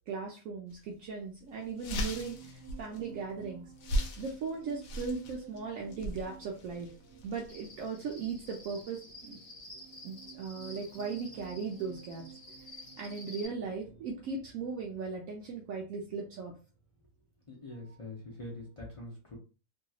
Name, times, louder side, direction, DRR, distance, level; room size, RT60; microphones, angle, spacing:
voice 1, 0.1-3.7 4.2-6.9 7.2-9.4 10.0-12.4 13.0-16.5, right 5 dB, 70° right, 0 dB, 1.0 m, -38 dB
sound 1, 0.7-0.9 1.3-1.4 1.6-8.7, equal, 75° left, 1.0 m, -39 dB
sound 2, 1.5-18.2 18.4-18.7, right 9 dB, 45° right, 1.4 m, -54 dB
Cricket, 7.5-13.5, left 1 dB, 50° left, 1.2 m, -51 dB
voice 2, 17.5-19.4, left 2 dB, 30° left, -4 dB, 0.6 m, -44 dB
2.9 x 2.8 x 2.3 m, 0.34 s
omnidirectional pair, 1.5 m